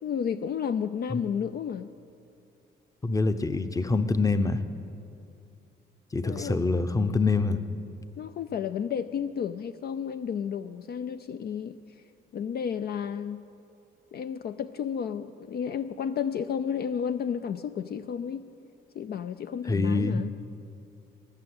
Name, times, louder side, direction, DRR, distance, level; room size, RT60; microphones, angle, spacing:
voice 1, 0.0-1.9 6.2-6.9 8.2-11.8 12.3-13.4 14.1-18.5 18.9-20.3, left 7 dB, 55° left, 10 dB, 0.4 m, -32 dB
voice 2, 3.0-4.6 6.1-7.6 19.7-20.2, left 3 dB, 15° left, 11 dB, 0.8 m, -25 dB
20.0 x 6.8 x 8.1 m, 2.6 s
cardioid pair, 90°, 20 cm